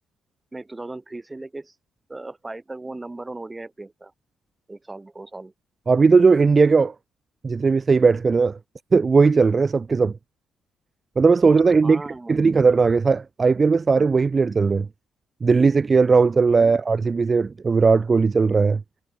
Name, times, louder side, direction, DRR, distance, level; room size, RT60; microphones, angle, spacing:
voice 1, 0.5-1.7 2.1-4.1 4.7-5.5 11.8-12.5, right 2 dB, 15° right, 3.3 m, -37 dB
voice 2, 5.9-6.9 7.4-8.6 8.9-10.2 11.2-12.0 12.3-14.9 15.4-18.8, right 4 dB, 35° right, 0.9 m, -18 dB
cardioid pair, 90°, 0 cm